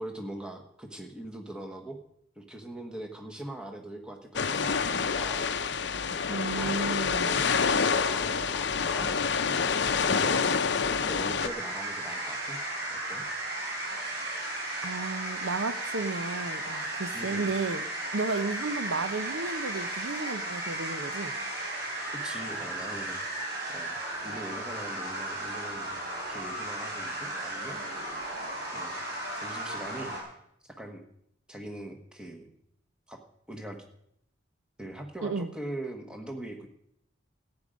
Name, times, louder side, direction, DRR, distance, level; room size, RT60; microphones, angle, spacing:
voice 1, 0.0-2.0 2.3-5.5 6.6-10.6 11.0-12.6 12.9-13.2 17.1-17.5 22.1-23.2 23.7-24.0 24.2-25.9 26.3-27.8 28.7-29.0 29.4-30.2 30.6-31.0 31.5-32.5 33.1-33.2 33.5-33.8 34.8-36.7, right 1 dB, 5° right, 3 dB, 1.3 m, -42 dB
sound 1, 4.4-11.5, left 5 dB, 60° left, 0.6 m, -27 dB
voice 2, 6.3-7.4 14.8-17.8 18.1-21.3 35.2-35.5, right 3 dB, 80° right, 12 dB, 0.8 m, -33 dB
sound 2, 11.4-30.2, right 1 dB, 50° right, 4.3 m, -35 dB
14.5 x 9.0 x 5.2 m, 0.74 s
head